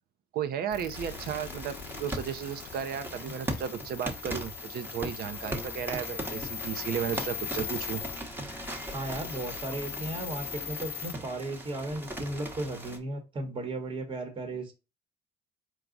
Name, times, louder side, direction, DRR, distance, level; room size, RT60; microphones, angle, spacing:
voice 1, 0.3-8.0, right 8 dB, 65° right, 0.7 m, -34 dB
sound 1, 0.7-11.1, left 11 dB, 80° left, 0.4 m, -41 dB
sound 2, 0.9-13.0, right 1 dB, 10° right, 1.0 m, -39 dB
sound 3, 5.2-10.8, left 2 dB, 10° left, 0.7 m, -48 dB
voice 2, 8.9-14.7, right 2 dB, 30° right, 1.1 m, -35 dB
4.7 x 2.3 x 3.8 m
cardioid pair, 110°, 17 cm